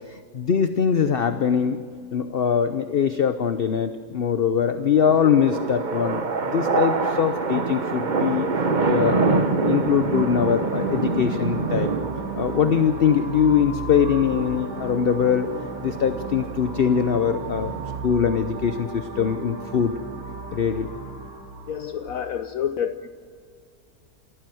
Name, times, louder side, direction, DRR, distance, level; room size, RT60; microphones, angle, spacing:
voice 1, 0.1-1.8 2.1-6.2 6.5-8.5 8.9-11.9 12.4-15.5 15.8-17.7 18.0-19.9 20.5-20.9, left 7 dB, 50° left, 10 dB, 0.8 m, -22 dB
sound 1, 5.0-18.0, right 3 dB, 35° right, 1.0 m, -27 dB
sound 2, 10.1-22.1, right 4 dB, 65° right, 3.0 m, -35 dB
voice 2, 21.7-23.1, left 8 dB, 65° left, 10 dB, 1.1 m, -28 dB
28.0 x 14.5 x 7.8 m, 2.2 s
omnidirectional pair, 1.7 m